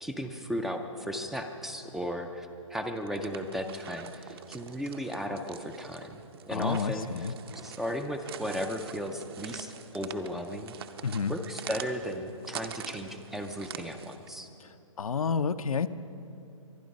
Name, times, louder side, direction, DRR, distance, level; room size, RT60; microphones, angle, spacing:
voice 1, 0.0-6.2 6.5-10.8 11.3-14.5, equal, ahead, 6 dB, 0.3 m, -35 dB
sound 1, 3.0-14.3, right 9 dB, 45° right, 0.8 m, -45 dB
voice 2, 6.5-7.3 11.0-11.3 15.0-15.9, left 5 dB, 90° left, 10 dB, 0.6 m, -29 dB
23.5 x 10.0 x 5.3 m, 2.7 s
hypercardioid pair, 150°, 17 cm